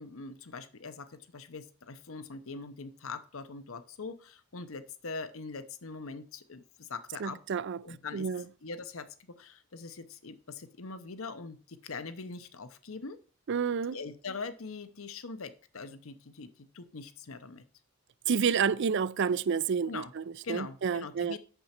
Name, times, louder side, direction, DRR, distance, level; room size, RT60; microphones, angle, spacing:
voice 1, 0.0-7.4 7.8-13.2 13.9-17.6 19.9-20.1 20.4-21.4, left 4 dB, 70° left, 0.9 m, -42 dB
voice 2, 7.2-7.8 8.1-8.4 13.5-14.0 18.3-21.4, right 6 dB, 55° right, 0.4 m, -29 dB
9.1 x 6.9 x 4.4 m
head